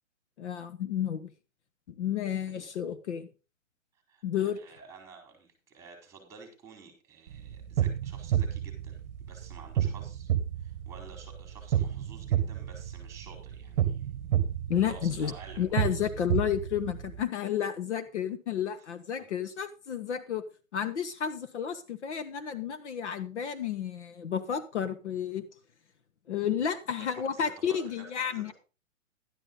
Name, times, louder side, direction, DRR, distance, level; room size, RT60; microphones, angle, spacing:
voice 1, 0.4-1.3 2.0-3.3 4.2-4.6 14.7-20.4 20.7-25.4 26.3-28.5, left 9 dB, 60° left, 1.2 m, -31 dB
voice 2, 4.1-10.3 10.6-14.1 14.9-16.1 18.8-18.9 27.1-28.5, right 5 dB, 5° right, 4.3 m, -51 dB
sound 1, 7.3-17.2, right 10 dB, 30° right, 1.3 m, -31 dB
12.0 x 11.0 x 3.9 m
hypercardioid pair, 160°, 39 cm